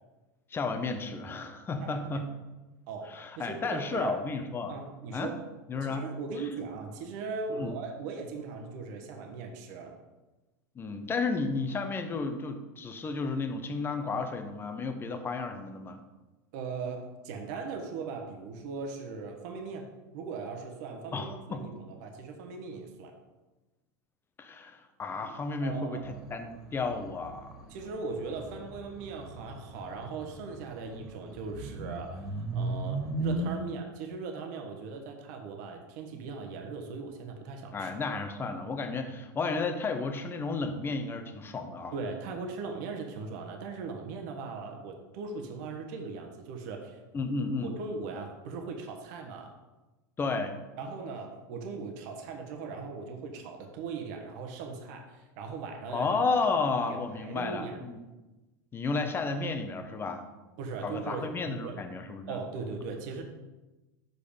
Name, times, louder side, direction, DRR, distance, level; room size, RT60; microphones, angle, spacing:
voice 1, 0.5-2.3 3.1-4.7 5.1-5.3 5.7-6.0 7.6-7.7 10.7-16.0 21.1-21.6 24.4-27.6 37.7-41.9 47.1-47.7 50.2-50.5 55.9-58.0 58.7-60.3 60.8-62.4, left 4 dB, 20° left, 7 dB, 0.9 m, -32 dB
voice 2, 1.8-2.2 2.9-4.2 4.7-5.4 5.7-10.0 16.5-23.1 25.6-26.1 27.7-37.9 41.9-47.0 47.6-49.5 50.8-56.1 56.9-57.8 60.6-61.8 62.3-63.2, right 4 dB, 65° right, 3 dB, 1.2 m, -39 dB
sound 1, 26.0-33.6, right 2 dB, 5° right, 2.2 m, -38 dB
6.6 x 5.3 x 5.1 m, 1.1 s
supercardioid pair, 115°, 10 cm